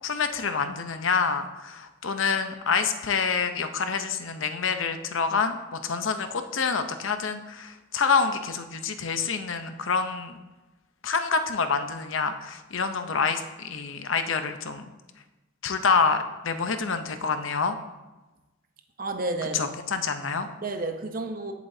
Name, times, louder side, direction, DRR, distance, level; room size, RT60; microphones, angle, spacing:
voice 1, 0.0-10.4 11.0-14.9 15.6-17.8 19.5-20.5, left 5 dB, 80° left, 8 dB, 0.8 m, -27 dB
voice 2, 19.0-20.0 20.6-21.5, right 2 dB, 45° right, 6 dB, 0.9 m, -31 dB
16.0 x 7.3 x 2.8 m, 1.1 s
head